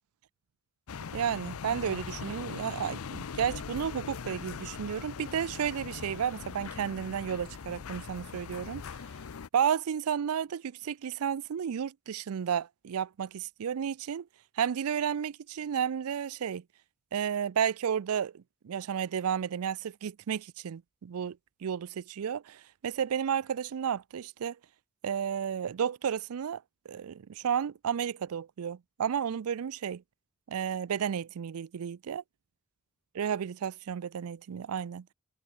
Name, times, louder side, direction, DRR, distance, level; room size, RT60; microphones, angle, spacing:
sound 1, 0.9-9.5, left 6 dB, 80° left, 0.6 m, -41 dB
voice 1, 1.1-8.8 9.5-14.3 14.6-16.6 17.1-24.6 25.0-30.0 30.5-32.2 33.1-35.1, right 8 dB, 85° right, 0.4 m, -32 dB
head